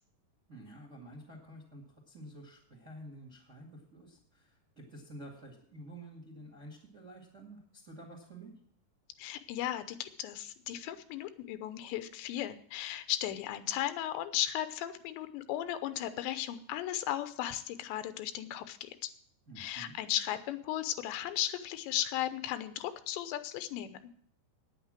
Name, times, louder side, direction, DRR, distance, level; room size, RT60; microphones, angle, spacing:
voice 1, 0.5-8.5 19.5-19.9, right 1 dB, 35° right, 0 dB, 1.1 m, -50 dB
voice 2, 9.2-19.1 19.6-24.0, left 12 dB, 90° left, 11 dB, 3.1 m, -36 dB
9.6 x 9.1 x 7.5 m, 0.62 s
omnidirectional pair, 4.9 m